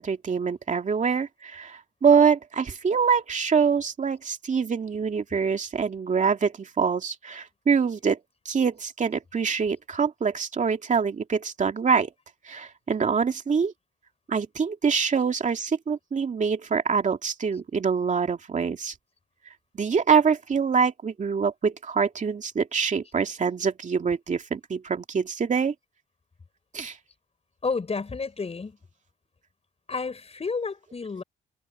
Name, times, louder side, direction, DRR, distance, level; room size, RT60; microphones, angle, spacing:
voice 1, 0.0-8.2 8.4-12.1 12.5-13.7 14.3-18.9 19.7-25.7 26.7-27.0, right 6 dB, 40° right, 2.4 m, -25 dB
voice 2, 27.6-28.8 29.9-31.2, left 4 dB, 30° left, 5.3 m, -31 dB
cardioid pair, 90°, 20 cm